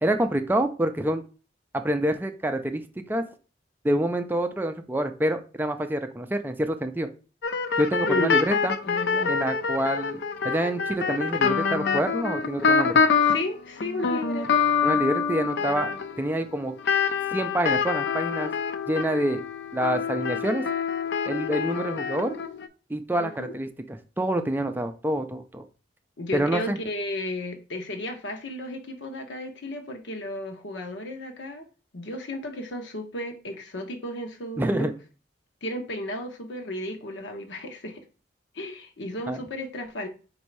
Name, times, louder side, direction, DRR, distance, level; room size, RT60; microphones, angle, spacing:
voice 1, 0.0-1.2 1.7-2.8 3.1-3.2 3.8-7.1 7.8-8.7 9.3-13.0 14.8-15.9 16.2-16.7 17.3-18.5 18.9-19.4 19.7-20.6 21.2-22.4 22.9-25.6 26.3-26.8 34.6-34.9 39.3-39.4, right 1 dB, 10° right, 6 dB, 0.4 m, -27 dB
sound 1, 7.4-13.5 13.8-22.7, left 6 dB, 65° left, 0.5 m, -26 dB
voice 2, 8.1-8.4 8.8-9.3 13.2-14.6 23.2-23.5 26.2-31.7 31.9-34.9 35.6-38.0 38.5-40.1, left 1 dB, 80° left, 4 dB, 0.9 m, -33 dB
4.1 x 2.7 x 4.6 m, 0.35 s
head